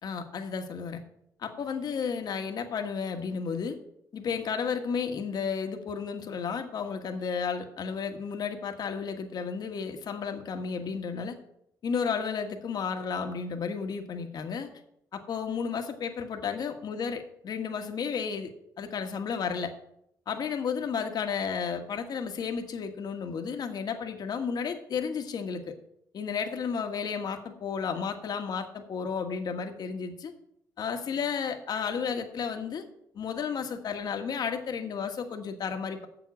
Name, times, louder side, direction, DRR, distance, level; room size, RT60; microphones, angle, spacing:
voice 1, 0.0-1.0 1.4-3.8 4.1-11.4 11.8-14.7 15.1-18.5 18.8-19.7 20.3-25.7 26.1-30.3 30.8-32.8 33.1-36.1, left 6 dB, 55° left, 5 dB, 1.5 m, -32 dB
7.4 x 7.3 x 8.4 m, 0.76 s
cardioid pair, 100°, 8 cm